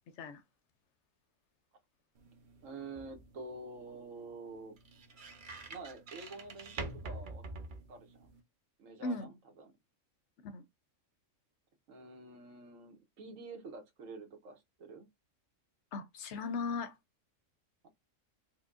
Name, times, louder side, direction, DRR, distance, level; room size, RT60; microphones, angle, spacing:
sound 1, 2.1-8.4, right 3 dB, 50° right, 0.6 m, -47 dB
voice 1, 2.6-4.7 5.7-7.4 7.9-8.3 8.8-9.7 11.9-15.1, right 3 dB, 75° right, 1.3 m, -48 dB
voice 2, 9.0-9.3 10.4-10.6 15.9-16.9, left 3 dB, 70° left, 0.8 m, -37 dB
4.4 x 2.1 x 2.4 m
omnidirectional pair, 1.4 m